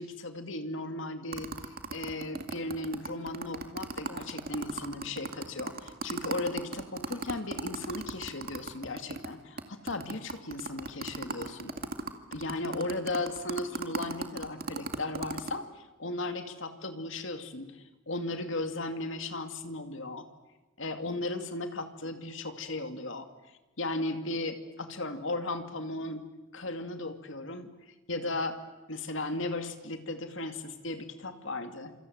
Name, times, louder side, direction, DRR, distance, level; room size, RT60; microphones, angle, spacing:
voice 1, 0.0-11.7 12.3-20.3 20.8-23.3 23.8-26.3 26.5-27.7 28.1-28.6 28.9-31.9, left 2 dB, 70° left, 7 dB, 2.5 m, -36 dB
sound 1, 1.3-9.3 9.6-9.7 9.9-15.5, right 3 dB, 50° right, 2.2 m, -36 dB
27.5 x 26.0 x 8.0 m, 1.1 s
head